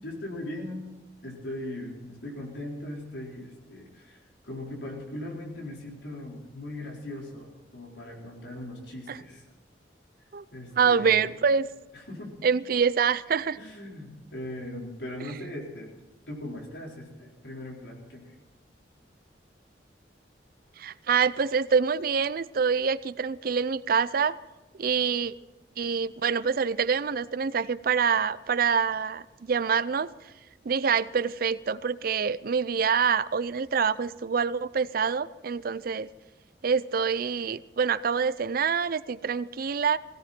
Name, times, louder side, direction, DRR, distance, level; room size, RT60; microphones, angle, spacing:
voice 1, 0.0-0.9 1.2-9.4 10.5-11.3 11.9-12.3 13.6-15.9 16.3-18.4, left 1 dB, 90° left, -1 dB, 4.6 m, -39 dB
voice 2, 10.8-11.7 12.4-13.6 20.8-24.4 24.8-25.3 25.8-30.1 30.7-36.1 36.6-40.0, right 6 dB, 55° right, 17 dB, 0.5 m, -26 dB
18.5 x 17.0 x 4.4 m, 1.1 s
head